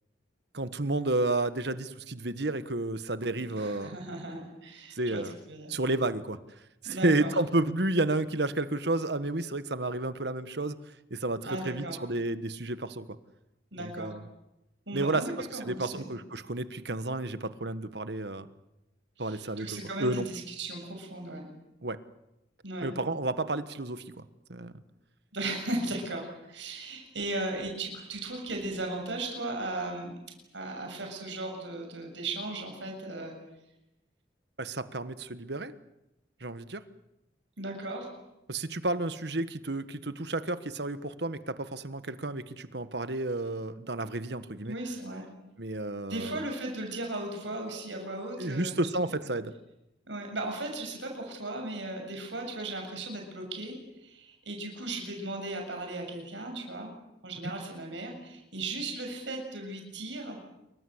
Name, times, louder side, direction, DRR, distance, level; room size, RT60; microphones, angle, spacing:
voice 1, 0.5-3.9 4.9-5.3 5.7-6.4 6.8-10.8 11.1-13.0 13.8-14.2 14.9-18.5 19.2-19.7 20.0-20.3 21.8-22.0 22.8-24.7 34.6-35.7 36.4-36.8 38.5-44.7 45.6-46.4 48.4-49.5, right 2 dB, 60° right, 12 dB, 1.5 m, -31 dB
voice 2, 3.6-5.2 5.5-5.8 6.8-7.3 11.4-12.0 13.7-14.1 14.9-16.1 19.2-21.5 22.6-22.9 25.3-30.1 30.5-33.3 37.6-38.1 44.7-45.3 46.1-49.1 50.1-53.8 54.0-56.9 57.2-60.4, right 2 dB, 80° right, 3 dB, 7.1 m, -36 dB
27.5 x 24.0 x 8.1 m, 0.90 s
head